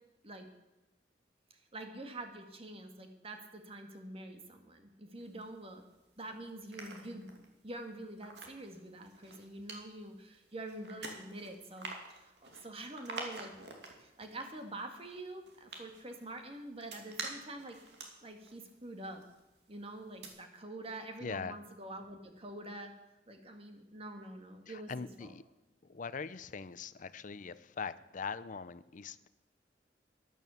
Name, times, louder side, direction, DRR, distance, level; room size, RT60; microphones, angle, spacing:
voice 1, 1.7-5.8 6.2-7.3 7.6-11.9 12.2-13.6 14.0-17.8 18.2-19.2 19.7-23.0 23.3-24.9 25.2-25.3, right 1 dB, 35° right, 5 dB, 1.9 m, -46 dB
sound 1, 5.2-6.1 6.5-19.7 20.0-20.3, right 3 dB, 70° right, 2.7 m, -48 dB
voice 2, 21.2-21.6 24.7-25.4 25.9-29.3, left 5 dB, 45° left, 15 dB, 0.6 m, -41 dB
12.0 x 11.0 x 7.1 m, 0.97 s
head